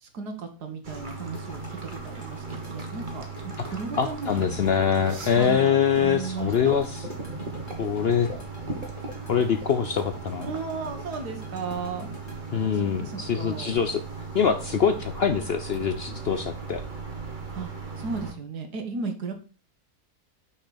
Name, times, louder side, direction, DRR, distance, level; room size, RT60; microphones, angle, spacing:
voice 1, 0.0-4.6 5.3-6.7 10.4-12.4 12.7-13.8 17.6-17.7 18.0-19.3, right 4 dB, 80° right, 6 dB, 1.9 m, -35 dB
sound 1, 0.8-18.3, right 4 dB, 30° right, 1.4 m, -37 dB
sound 2, 1.3-14.1, left 1 dB, 45° left, 2.2 m, -46 dB
voice 2, 4.0-7.0 7.8-8.3 9.3-10.5 12.5-14.0 14.3-16.8, left 7 dB, 60° left, 9 dB, 0.6 m, -24 dB
6.0 x 5.8 x 4.1 m, 0.37 s
omnidirectional pair, 1.7 m